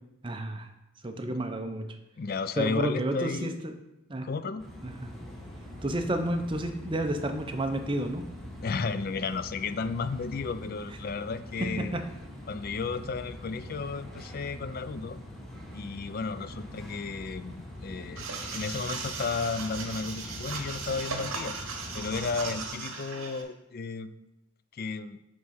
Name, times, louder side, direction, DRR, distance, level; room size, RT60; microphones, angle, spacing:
voice 1, 0.2-0.7 1.0-1.9 2.6-3.7 4.1-4.3 4.8-5.1 5.8-8.3 11.6-12.0, right 1 dB, 25° right, 6 dB, 0.6 m, -31 dB
voice 2, 2.2-3.6 4.2-4.7 8.6-12.0 12.5-15.2 15.7-18.2 18.5-21.6 21.9-24.1 24.7-25.2, left 4 dB, 45° left, 12 dB, 0.3 m, -33 dB
sound 1, 4.6-22.7, left 1 dB, ahead, 1.1 m, -43 dB
sound 2, 18.2-23.4, right 4 dB, 65° right, 1.1 m, -37 dB
9.4 x 3.7 x 5.5 m, 0.94 s
head